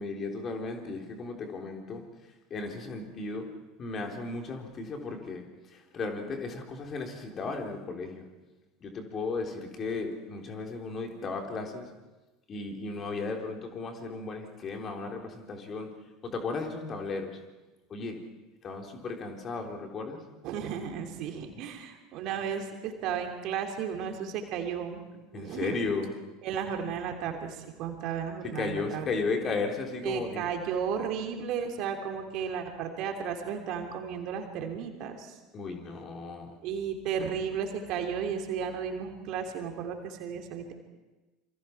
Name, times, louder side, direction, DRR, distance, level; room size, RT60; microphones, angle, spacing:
voice 1, 0.0-2.0 2.5-8.3 8.8-11.9 12.5-15.9 16.2-17.4 17.9-18.2 18.6-20.2 25.3-26.1 28.6-30.5 35.5-36.6, left 4 dB, 35° left, 2 dB, 3.9 m, -35 dB
voice 2, 20.4-25.8 26.4-29.1 30.0-35.4 36.6-40.7, right 7 dB, 50° right, 4 dB, 3.2 m, -34 dB
27.5 x 24.5 x 4.6 m, 1.1 s
figure-of-eight pair, 75°, 0 cm